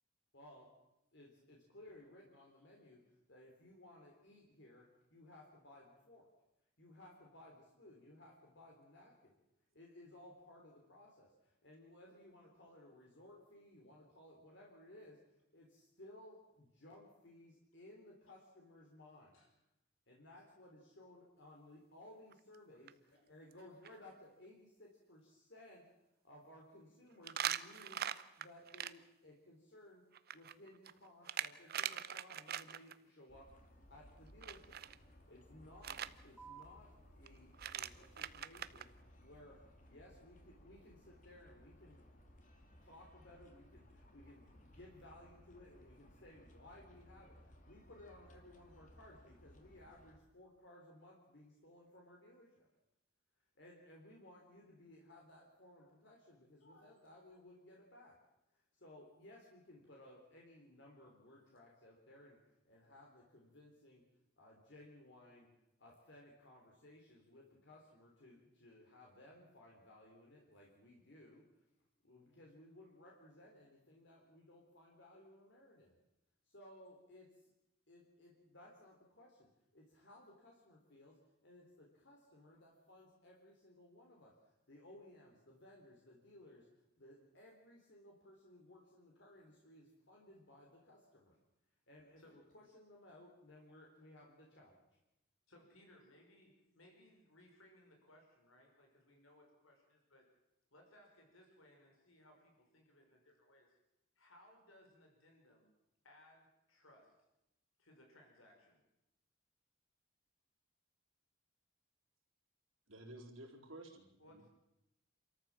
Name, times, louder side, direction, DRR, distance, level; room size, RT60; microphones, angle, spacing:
voice 1, 0.3-0.7 1.1-6.3 6.8-9.3 9.7-19.4 20.1-25.8 26.2-28.0 28.4-30.0 30.3-34.8 35.3-36.9 37.2-39.6 39.9-42.0 42.8-52.7 53.6-58.2 58.5-62.4 62.6-64.0 64.4-65.5 65.8-71.4 72.0-76.0 76.4-77.5 77.9-86.7 87.0-91.4 91.9-94.8, left 1 dB, 60° left, 3.5 m, -60 dB
sound 1, 22.3-22.5 22.9-23.0 23.5-23.6 23.8-23.9 27.2-28.9 30.1-32.9 34.4-34.9 35.8-36.1 37.3-37.4 37.5-38.9, right 10 dB, 50° right, 0.7 m, -41 dB
sound 2, 33.3-50.2, equal, 40° left, 2.6 m, -62 dB
sound 3, 36.4-43.4, right 6 dB, ahead, 3.5 m, -65 dB
voice 2, 56.6-57.0 57.3-57.4 92.2-92.4 95.5-100.2 100.7-103.7 104.2-105.7 106.0-107.1 107.8-108.8 114.2-114.5, left 1 dB, 90° left, 5.5 m, -65 dB
voice 3, 112.9-114.5, right 1 dB, 80° right, 4.0 m, -53 dB
28.0 x 14.0 x 7.5 m
head